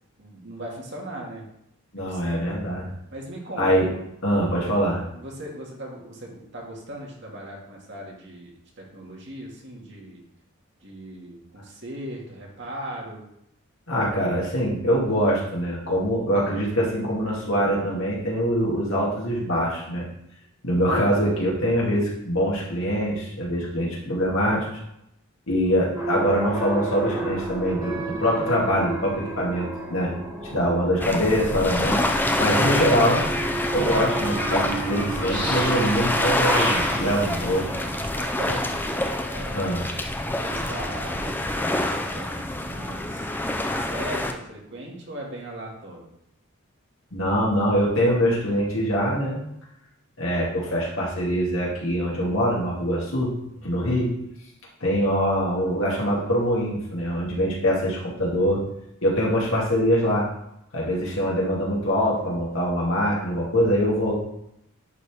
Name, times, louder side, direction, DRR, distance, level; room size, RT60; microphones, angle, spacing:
voice 1, 0.2-1.5 2.0-2.4 3.1-3.9 5.1-10.2 10.8-13.2 38.2-39.8 40.4-46.1, right 1 dB, 55° right, -2 dB, 2.1 m, -38 dB
voice 2, 1.9-2.9 3.6-3.9 4.2-5.0 13.9-20.1 20.6-24.7 25.5-30.1 30.5-32.0 32.4-33.2 33.7-37.7 39.5-39.9 47.1-49.4 50.2-54.1 54.8-58.6 59.0-60.3 60.7-64.1, equal, 65° left, -5 dB, 2.4 m, -23 dB
sound 1, 25.9-38.0, right 2 dB, 20° right, 2.1 m, -32 dB
sound 2, 31.0-44.3, left 1 dB, 10° left, 0.5 m, -26 dB
10.5 x 4.4 x 3.5 m, 0.78 s
head